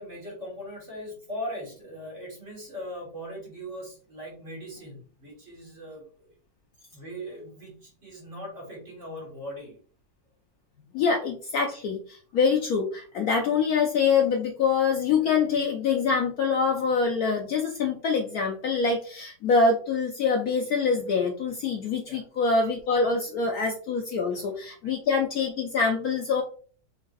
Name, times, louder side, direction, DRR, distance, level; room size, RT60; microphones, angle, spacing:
voice 1, 0.0-6.3 6.9-9.8 22.1-22.2 24.3-24.4 24.8-24.9, equal, 40° right, -3 dB, 2.2 m, -39 dB
voice 2, 10.9-26.4, left 5 dB, 70° left, 2 dB, 0.9 m, -25 dB
4.0 x 3.8 x 2.5 m, 0.43 s
omnidirectional pair, 2.0 m